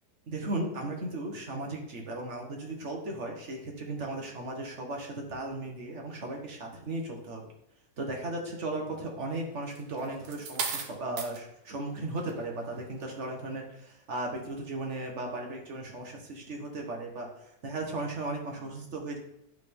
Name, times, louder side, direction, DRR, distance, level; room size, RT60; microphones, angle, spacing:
voice 1, 0.3-7.4 8.0-19.2, right 2 dB, 45° right, 1 dB, 1.4 m, -36 dB
sound 1, 9.7-11.4 12.1-12.4, right 5 dB, 65° right, 1.3 m, -35 dB
11.0 x 3.8 x 3.6 m, 0.78 s
omnidirectional pair, 1.8 m